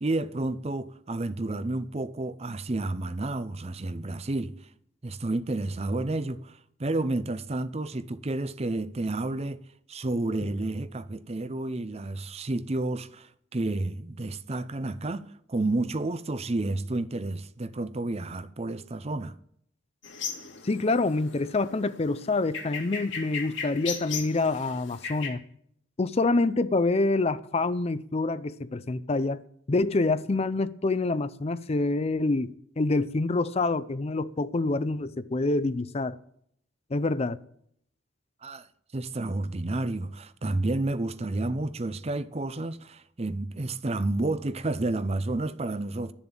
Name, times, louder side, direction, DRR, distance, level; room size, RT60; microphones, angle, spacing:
voice 1, 0.0-4.6 5.0-9.6 9.9-19.3 38.4-38.7 38.9-46.1, right 2 dB, 35° right, 0.6 m, -30 dB
sound 1, 20.0-25.3, left 6 dB, 75° left, 2.3 m, -38 dB
voice 2, 20.6-25.4 26.0-29.4 29.7-36.2 36.9-37.4, left 3 dB, 35° left, 0.5 m, -26 dB
11.5 x 7.1 x 8.9 m
head